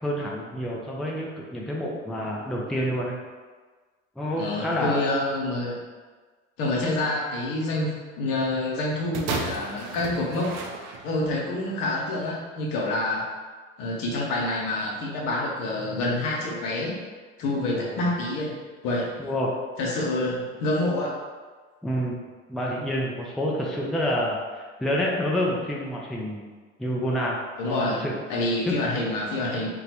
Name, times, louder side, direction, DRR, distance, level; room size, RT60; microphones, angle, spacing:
voice 1, 0.0-3.2 4.2-5.0 17.7-18.0 19.2-19.5 21.8-22.2 22.5-26.5 26.8-28.2 28.7-28.8, equal, ahead, -3 dB, 0.5 m, -28 dB
voice 2, 4.4-5.8 6.6-7.9 8.2-10.5 11.0-13.3 13.8-16.9 17.4-18.6 18.8-19.1 19.8-21.2 27.6-29.7, left 2 dB, 65° left, -3 dB, 0.9 m, -27 dB
sound 1, 9.1-11.4 12.2-12.3, right 3 dB, 45° right, 0.6 m, -33 dB
3.8 x 2.3 x 2.9 m, 1.4 s
hypercardioid pair, 60°, 36 cm